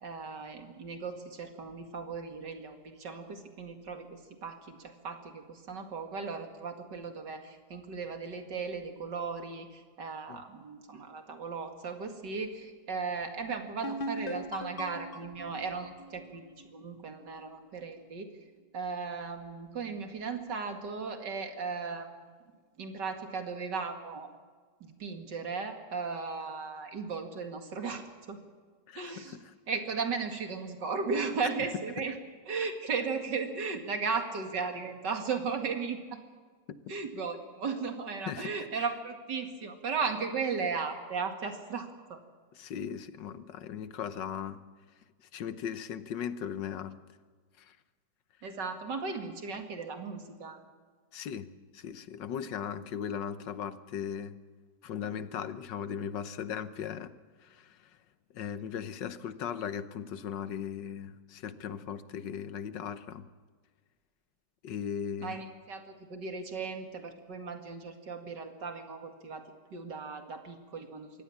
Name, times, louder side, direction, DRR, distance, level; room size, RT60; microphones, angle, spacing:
voice 1, 0.0-16.5 16.7-18.3 18.7-22.2 22.8-24.3 24.8-28.4 28.9-29.4 29.7-32.2 32.5-36.2 36.9-42.2 48.4-50.6 65.2-69.4 69.7-71.1, right 5 dB, 75° right, 6 dB, 2.7 m, -36 dB
sound 1, 13.8-17.4, equal, 40° left, 0.9 m, -40 dB
voice 2, 28.9-29.5 31.6-31.7 38.2-38.8 42.5-44.6 45.3-47.0 47.6-47.8 51.1-54.3 54.8-57.1 57.4-58.0 58.3-63.3 64.6-65.4, left 8 dB, 80° left, 13 dB, 1.6 m, -38 dB
23.5 x 17.5 x 7.2 m, 1.5 s
omnidirectional pair, 1.9 m